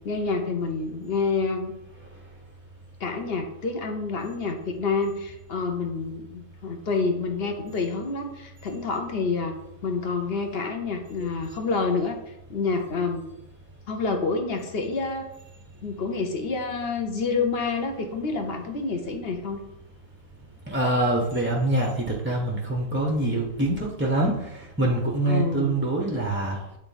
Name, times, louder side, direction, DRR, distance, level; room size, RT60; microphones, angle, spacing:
voice 1, 0.0-1.7 3.0-9.6 9.8-13.2 13.9-15.3 15.8-19.6 24.8-24.9 25.3-25.8, left 4 dB, 50° left, 5 dB, 0.8 m, -28 dB
voice 2, 20.7-26.6, right 1 dB, 15° right, 0 dB, 0.5 m, -25 dB
8.7 x 3.5 x 4.0 m, 0.87 s
omnidirectional pair, 1.6 m